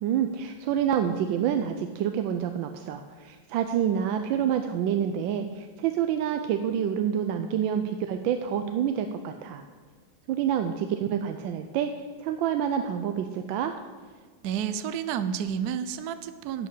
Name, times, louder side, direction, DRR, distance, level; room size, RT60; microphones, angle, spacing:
voice 1, 0.0-9.6 10.3-11.9 12.2-13.7, right 9 dB, 85° right, 6 dB, 1.4 m, -27 dB
voice 2, 14.4-16.7, right 8 dB, 70° right, 11 dB, 1.0 m, -30 dB
11.0 x 5.0 x 8.2 m, 1.5 s
omnidirectional pair, 2.0 m